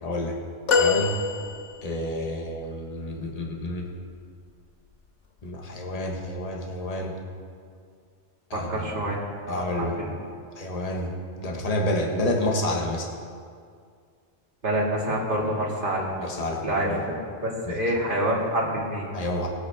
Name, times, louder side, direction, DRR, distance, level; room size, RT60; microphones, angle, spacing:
voice 1, 0.0-0.4 0.8-1.2 1.8-3.9 5.4-7.1 8.5-8.9 9.5-10.0 10.5-13.1 16.2-17.0 17.7-17.8 19.1-19.5, left 1 dB, 35° left, 0 dB, 1.3 m, -29 dB
sound 1, 0.7-2.1 4.5-4.7 6.0-6.1, left 5 dB, 80° left, 1.3 m, -24 dB
voice 2, 8.5-9.2 9.5-10.1 14.6-16.1 16.6-17.1 17.4-19.1, right 1 dB, 50° right, -4 dB, 2.3 m, -27 dB
19.5 x 8.2 x 3.5 m, 2.2 s
omnidirectional pair, 1.2 m